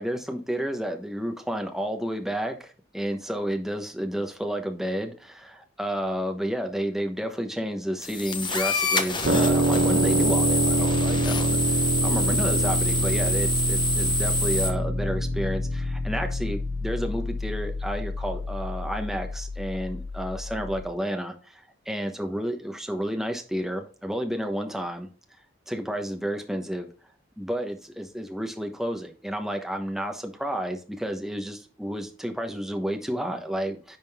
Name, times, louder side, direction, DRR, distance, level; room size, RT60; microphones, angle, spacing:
voice 1, 0.0-25.1 25.7-26.9 27.4-34.0, equal, ahead, 1.0 m, -31 dB
sound 1, 8.0-14.7, left 1 dB, 25° left, 1.0 m, -26 dB
sound 2, 9.2-20.9, equal, 75° right, 1.7 m, -26 dB
10.5 x 3.8 x 3.5 m
head